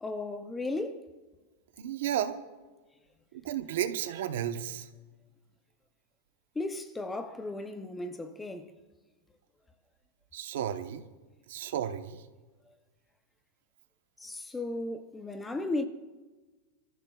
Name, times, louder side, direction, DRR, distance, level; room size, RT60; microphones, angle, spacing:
voice 1, 0.0-1.1 6.6-8.7 14.2-15.9, left 2 dB, 5° left, 0.5 m, -35 dB
voice 2, 1.8-2.4 3.3-4.9 10.3-11.0 11.5-12.2, right 10 dB, 65° right, 0.9 m, -33 dB
28.0 x 14.0 x 2.3 m
supercardioid pair, 180°, 0 cm